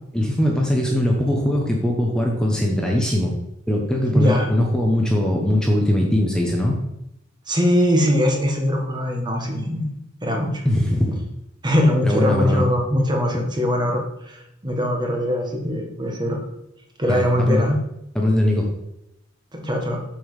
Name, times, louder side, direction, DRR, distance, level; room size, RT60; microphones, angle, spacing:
voice 1, 0.1-3.3 3.7-6.8 10.6-11.2 12.0-12.7 17.1-17.7 18.1-18.7, left 1 dB, 5° left, -1 dB, 1.1 m, -20 dB
voice 2, 4.1-4.5 7.5-9.9 10.2-10.6 11.6-16.4 17.0-17.8 19.5-20.0, left 1 dB, 25° right, 1 dB, 1.6 m, -21 dB
7.1 x 5.5 x 7.2 m, 0.85 s
head